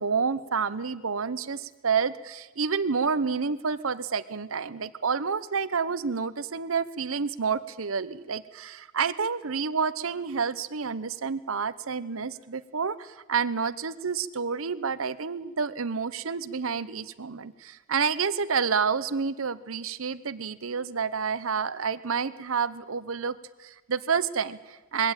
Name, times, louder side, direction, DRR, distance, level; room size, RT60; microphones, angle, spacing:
voice 1, 0.0-25.1, right 5 dB, 75° right, 15 dB, 0.8 m, -29 dB
21.5 x 16.5 x 8.9 m, 1.2 s
head